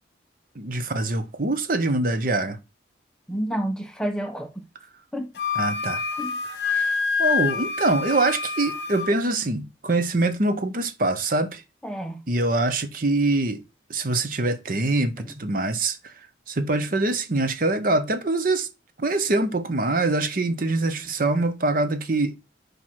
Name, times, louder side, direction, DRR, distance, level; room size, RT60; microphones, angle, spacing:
voice 1, 0.5-2.6 5.6-6.0 6.6-11.6 12.3-13.6 13.9-16.1 16.5-18.7 19.0-22.3, right 2 dB, 45° right, 0.8 m, -24 dB
voice 2, 3.3-4.7 5.1-5.3 6.2-6.4 11.8-12.2 15.3-15.4, right 1 dB, 5° left, 0.7 m, -29 dB
Wind instrument woodwind instrument, 5.3-9.1, left 5 dB, 55° left, 1.2 m, -27 dB
5.0 x 4.7 x 5.7 m
head